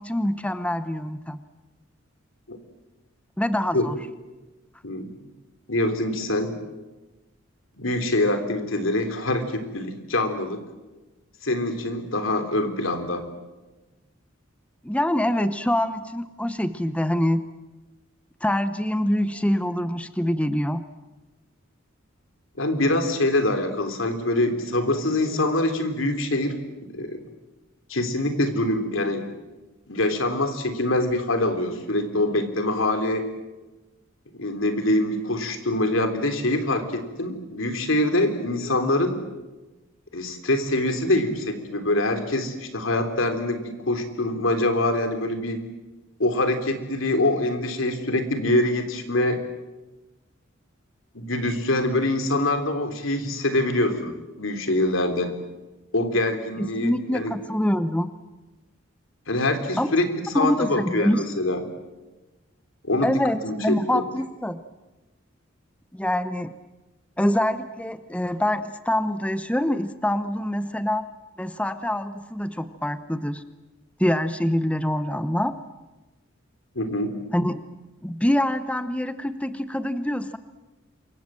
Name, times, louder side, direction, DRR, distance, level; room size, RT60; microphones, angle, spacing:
voice 1, 0.0-1.4 3.4-4.0 14.8-17.4 18.4-20.8 56.6-58.1 59.8-59.9 60.3-61.2 63.0-64.6 65.9-66.5 67.2-71.0 71.4-73.4 74.0-75.5 77.3-77.6 78.0-80.4, left 1 dB, 5° left, 11 dB, 0.8 m, -25 dB
voice 2, 5.7-6.6 7.8-10.6 11.4-13.3 22.6-26.6 26.9-27.2 27.9-29.3 29.9-33.3 34.3-39.2 40.1-45.6 46.2-49.4 51.1-55.3 55.9-57.3 59.3-60.0 60.3-61.6 62.8-64.0 76.8-77.2, left 1 dB, 75° left, 7 dB, 3.4 m, -24 dB
27.5 x 24.0 x 7.6 m, 1.2 s
head